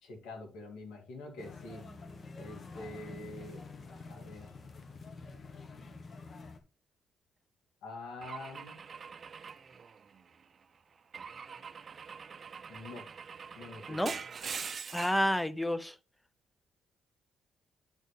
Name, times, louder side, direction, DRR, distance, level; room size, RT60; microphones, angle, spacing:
voice 1, 0.0-1.8 2.4-3.6 4.1-4.5 7.8-8.8 12.7-13.1 13.6-14.2, left 2 dB, 90° left, 2.3 m, -46 dB
sound 1, 1.4-6.6, left 3 dB, 45° left, 1.2 m, -47 dB
Car / Engine / Glass, 8.2-10.4 11.1-15.3, right 6 dB, 45° right, 0.5 m, -43 dB
voice 2, 14.9-15.9, equal, 5° left, 0.7 m, -29 dB
10.5 x 4.4 x 3.3 m
cardioid pair, 90°, 0 cm